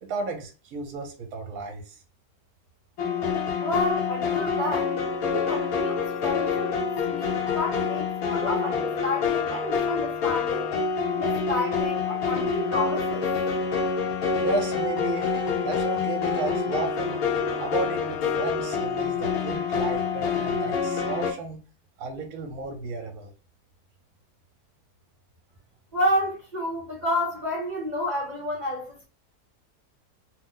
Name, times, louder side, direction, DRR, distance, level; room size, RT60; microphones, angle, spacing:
voice 1, 0.0-2.0 14.4-15.3 15.6-17.2 17.6-21.6 22.0-23.3, right 3 dB, 70° right, 1.0 m, -33 dB
sound 1, 3.0-21.3, left 5 dB, 70° left, 1.1 m, -27 dB
voice 2, 3.6-10.7 11.1-13.3 25.9-29.1, left 1 dB, 50° right, 0.5 m, -30 dB
2.8 x 2.0 x 3.6 m
omnidirectional pair, 1.7 m